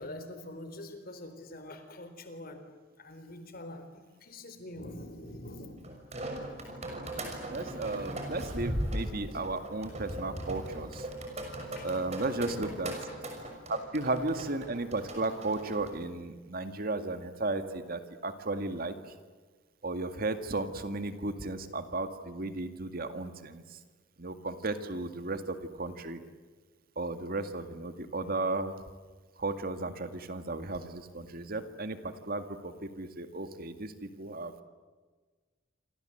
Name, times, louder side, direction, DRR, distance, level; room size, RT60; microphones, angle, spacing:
voice 1, 0.0-5.8 11.8-11.9 12.4-12.7 13.3-13.6, left 1 dB, 50° left, 9 dB, 4.0 m, -45 dB
sound 1, 5.8-15.9, right 1 dB, 35° right, 6.2 m, -38 dB
voice 2, 7.5-11.1 11.8-12.9 13.7-18.9 19.8-23.8 24.2-26.2 27.0-28.8 29.4-34.5, right 2 dB, 50° right, 9 dB, 2.0 m, -34 dB
28.0 x 27.0 x 8.0 m, 1.4 s
head